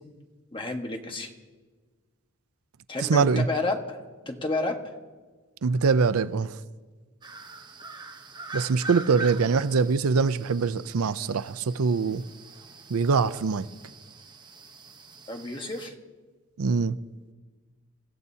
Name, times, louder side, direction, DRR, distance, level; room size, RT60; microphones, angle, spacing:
voice 1, 0.5-1.3 2.9-4.0 4.2-4.8 15.3-15.9, left 2 dB, 25° left, 1.4 m, -30 dB
voice 2, 3.0-3.5 5.6-6.6 8.5-12.2 12.9-13.7 16.6-16.9, right 5 dB, 90° right, 0.5 m, -23 dB
sound 1, 7.2-15.9, right 3 dB, 20° right, 0.9 m, -43 dB
27.5 x 15.0 x 2.8 m
head